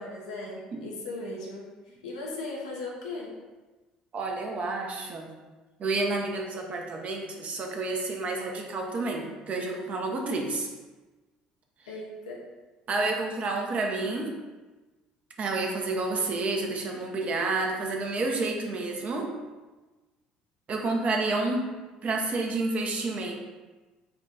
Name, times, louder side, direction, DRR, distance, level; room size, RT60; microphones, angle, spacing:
voice 1, 0.0-3.3 11.9-12.4, left 2 dB, 85° left, -3 dB, 0.9 m, -38 dB
voice 2, 4.1-5.3 5.8-10.7 12.9-14.3 15.4-19.3 20.7-21.7 22.0-23.3, right 3 dB, 45° right, 1 dB, 0.8 m, -29 dB
4.2 x 2.4 x 4.1 m, 1.2 s
hypercardioid pair, 65°, 3 cm